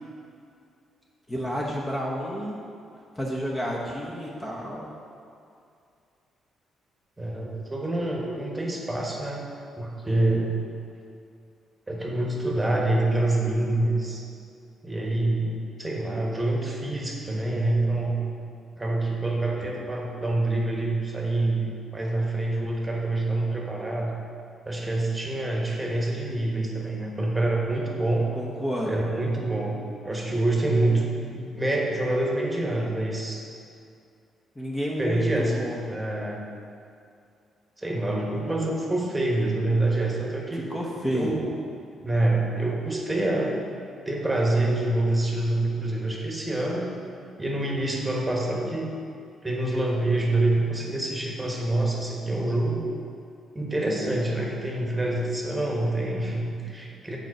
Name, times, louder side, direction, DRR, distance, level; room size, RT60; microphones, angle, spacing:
voice 1, 1.3-2.6 3.2-4.9 28.3-28.9 34.6-35.8 40.5-41.3, equal, 15° left, -4 dB, 0.9 m, -30 dB
voice 2, 7.2-9.4 9.8-10.6 11.9-14.2 14.8-18.2 18.8-24.1 24.7-28.3 28.9-33.4 35.0-35.5 35.8-36.5 37.8-40.7 41.0-41.5 42.0-43.6 44.0-46.9 47.4-48.9 49.4-52.8 53.5-57.2, right 2 dB, 15° right, -2 dB, 1.3 m, -26 dB
6.2 x 4.4 x 6.5 m, 2.4 s
cardioid pair, 90°, 0 cm